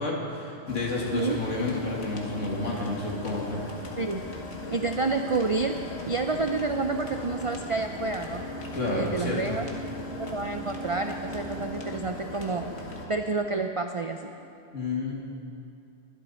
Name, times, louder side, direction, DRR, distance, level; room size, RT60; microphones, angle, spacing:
voice 1, 0.0-3.6 8.7-9.6 14.7-15.1, left 2 dB, 80° left, -3 dB, 2.4 m, -30 dB
sound 1, 0.7-13.1, left 1 dB, 60° left, 1.7 m, -38 dB
voice 2, 4.7-8.4 8.9-9.6 10.2-12.7 13.1-14.3, right 3 dB, 55° right, 5 dB, 0.3 m, -29 dB
22.5 x 8.3 x 4.2 m, 2.6 s
omnidirectional pair, 1.3 m